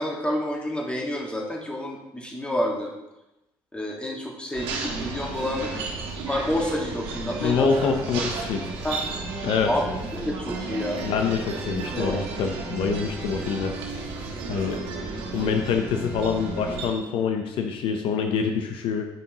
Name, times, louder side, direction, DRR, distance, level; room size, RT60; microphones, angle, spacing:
voice 1, 0.0-2.9 3.7-5.9 6.3-7.9 8.8-9.0 9.7-11.0 11.8-12.3, left 1 dB, 10° left, -1 dB, 1.7 m, -29 dB
sound 1, 4.5-16.9, right 3 dB, 85° right, 1.5 m, -33 dB
voice 2, 7.3-8.7 9.4-9.7 11.0-13.7 14.5-14.8 15.3-19.1, left 6 dB, 70° left, 4 dB, 0.7 m, -26 dB
9.1 x 5.3 x 2.9 m, 0.96 s
cardioid pair, 85°, 9 cm